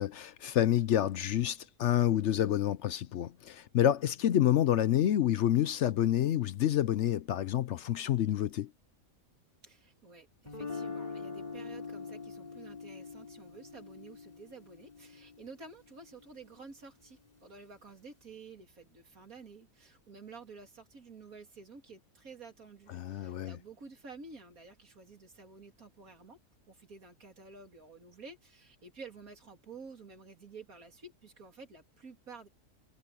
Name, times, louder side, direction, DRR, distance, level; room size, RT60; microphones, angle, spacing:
voice 1, 0.0-8.7 22.9-23.6, left 11 dB, 65° left, 0.8 m, -28 dB
voice 2, 9.6-26.4 26.7-32.5, right 4 dB, 85° right, 3.5 m, -51 dB
Guitar, 10.5-16.5, left 4 dB, 30° left, 3.1 m, -44 dB
omnidirectional pair, 1.5 m